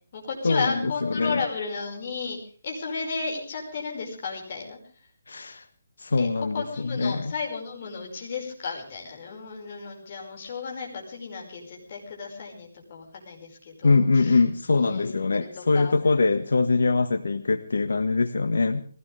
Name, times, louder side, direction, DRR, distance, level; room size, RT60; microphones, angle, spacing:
voice 1, 0.1-2.4 2.6-5.1 6.2-14.4 14.7-15.9, left 4 dB, 30° left, 0 dB, 5.4 m, -34 dB
voice 2, 1.0-1.4 5.3-5.6 6.0-7.3 13.8-18.8, left 3 dB, 85° left, 9 dB, 1.5 m, -23 dB
21.0 x 17.0 x 3.4 m, 0.44 s
hypercardioid pair, 175°, 0 cm